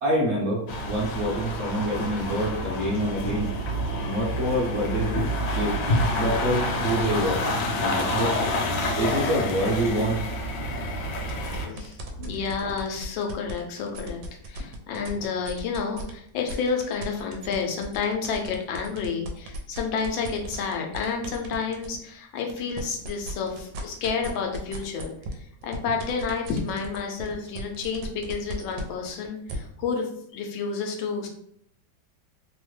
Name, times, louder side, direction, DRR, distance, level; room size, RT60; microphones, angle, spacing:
voice 1, 0.0-3.5 4.0-5.2 5.4-5.7 6.2-7.4 7.8-8.3 9.0-10.2, equal, 50° right, -6 dB, 0.9 m, -26 dB
sound 1, 0.7-11.7, left 1 dB, 70° left, 1.2 m, -28 dB
sound 2, 11.2-16.1 16.5-22.0 22.4-29.5, right 2 dB, 85° right, 1.3 m, -38 dB
voice 2, 11.7-31.3, left 5 dB, 90° left, 2 dB, 1.4 m, -30 dB
3.4 x 2.1 x 3.1 m, 0.70 s
omnidirectional pair, 2.1 m